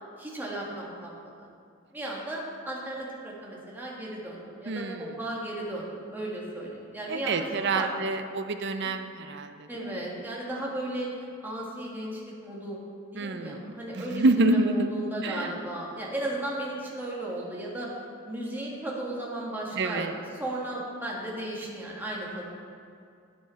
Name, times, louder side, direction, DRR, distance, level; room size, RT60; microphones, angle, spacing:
voice 1, 0.2-1.5 1.9-8.3 8.8-8.9 9.7-12.8 13.1-17.9 18.2-22.5, right 1 dB, 10° right, -5 dB, 1.7 m, -35 dB
voice 2, 4.7-5.0 7.1-10.0 13.2-13.6 14.1-14.9 15.2-15.5 19.7-20.1, right 2 dB, 55° right, 8 dB, 0.6 m, -27 dB
10.0 x 7.0 x 5.7 m, 2.4 s
head